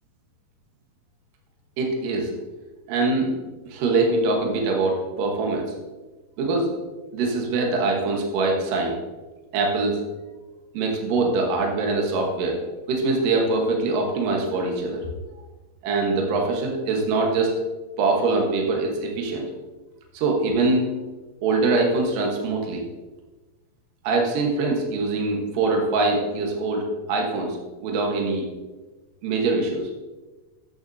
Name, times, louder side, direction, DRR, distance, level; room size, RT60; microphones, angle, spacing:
voice 1, 1.8-2.3 2.9-3.3 3.6-5.6 6.4-6.7 7.1-9.0 9.5-10.0 10.7-12.6 12.9-15.1 15.8-17.6 18.0-19.5 20.1-20.9 21.4-22.8 24.0-28.5 29.2-29.9, right 3 dB, 65° right, 0 dB, 2.9 m, -23 dB
12.5 x 9.4 x 2.8 m, 1.2 s
omnidirectional pair, 4.5 m